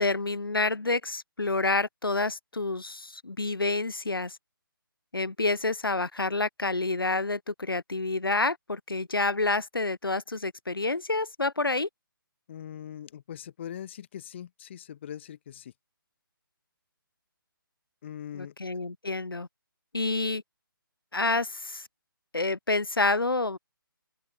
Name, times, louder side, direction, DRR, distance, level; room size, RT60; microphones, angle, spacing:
voice 1, 0.0-4.4 5.1-11.9 18.3-19.5 19.9-20.4 21.1-21.8 22.3-23.6, left 3 dB, 80° left, 0.9 m, -28 dB
voice 2, 12.5-15.7 18.0-18.5, left 10 dB, 30° left, 0.5 m, -41 dB
open air
figure-of-eight pair, 140°, 12 cm